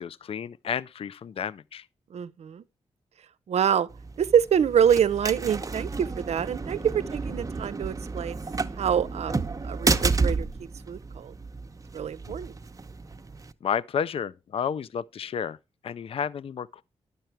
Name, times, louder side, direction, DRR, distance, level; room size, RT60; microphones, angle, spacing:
voice 1, 0.0-1.8 13.6-15.6 15.8-16.8, left 7 dB, 60° left, 0.4 m, -31 dB
voice 2, 2.1-2.6 3.5-3.9 4.2-8.4 8.8-10.5 10.9-11.3 11.9-12.5, right 8 dB, 75° right, 0.6 m, -26 dB
sound 1, 3.9-13.5, right 4 dB, 30° right, 0.8 m, -31 dB
10.5 x 6.7 x 4.5 m
cardioid pair, 70°, 11 cm